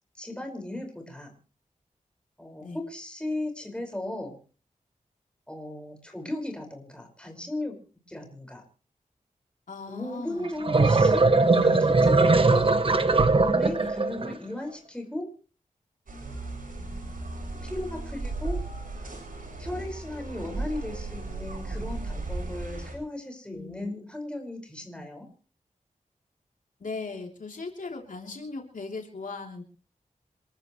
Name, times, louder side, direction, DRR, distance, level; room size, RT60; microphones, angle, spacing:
voice 1, 0.1-1.3 2.4-4.4 5.5-7.7 8.1-8.6 9.9-11.3 11.6-12.7 13.3-15.3 17.6-18.6 19.6-25.3, left 1 dB, 5° left, 2 dB, 5.2 m, -36 dB
voice 2, 9.7-10.5 13.7-13.9 23.5-24.0 26.8-29.6, left 3 dB, 75° left, 2 dB, 3.2 m, -38 dB
sound 1, 10.4-14.3, right 3 dB, 40° right, 1.2 m, -20 dB
sound 2, 16.1-22.9, right 2 dB, 80° right, 7.1 m, -35 dB
27.5 x 13.5 x 3.2 m, 0.38 s
wide cardioid pair, 100°, 14 cm